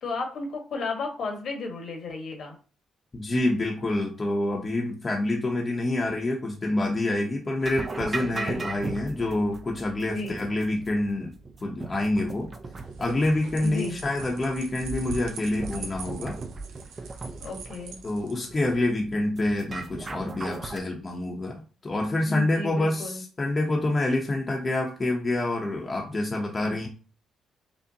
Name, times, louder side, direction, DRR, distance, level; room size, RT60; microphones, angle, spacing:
voice 1, 0.0-2.6 8.2-8.7 10.0-10.4 13.6-14.0 17.4-18.0 22.3-23.2 26.6-26.8, left 3 dB, 65° left, 3 dB, 1.2 m, -34 dB
voice 2, 3.1-11.3 11.6-12.5 13.0-16.4 18.0-26.9, left 2 dB, 30° left, -1 dB, 0.8 m, -27 dB
sound 1, 7.6-20.8, right 3 dB, 35° right, 0.5 m, -38 dB
sound 2, 12.7-18.8, right 4 dB, 80° right, 0.6 m, -41 dB
5.2 x 2.1 x 2.8 m, 0.37 s
cardioid pair, 90°, 0 cm